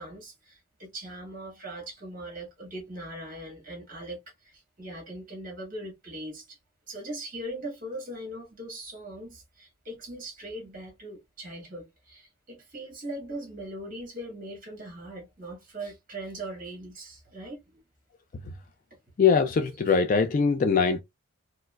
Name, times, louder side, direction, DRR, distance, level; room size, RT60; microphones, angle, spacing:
voice 1, 0.0-6.6 6.9-17.6, right 1 dB, 40° right, 1.7 m, -40 dB
voice 2, 19.2-21.0, left 5 dB, 40° left, 0.3 m, -22 dB
4.5 x 2.0 x 2.2 m
head